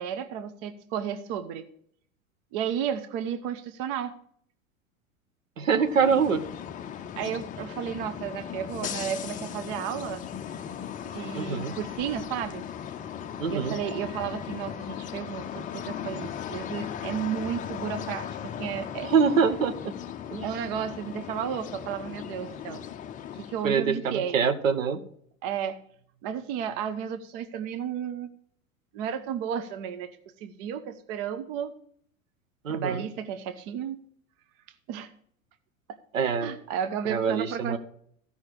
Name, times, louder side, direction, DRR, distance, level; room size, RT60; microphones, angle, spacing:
voice 1, 0.0-1.6 2.5-4.1 7.2-10.2 11.1-12.6 13.5-19.1 20.4-22.8 23.3-24.4 25.4-25.8 26.2-28.3 28.9-30.1 30.4-31.7 32.7-34.0 34.9-35.1 36.4-37.8, right 8 dB, 40° right, 10 dB, 0.9 m, -33 dB
voice 2, 5.6-6.5 11.3-11.8 13.4-13.8 19.0-20.0 20.3-20.4 23.6-25.0 32.6-33.1 36.1-36.5 37.1-37.8, right 6 dB, 70° right, 8 dB, 1.2 m, -25 dB
sound 1, 5.7-23.8, left 9 dB, 20° left, 0.6 m, -37 dB
15.0 x 5.6 x 4.7 m, 0.63 s
figure-of-eight pair, 85°, 41 cm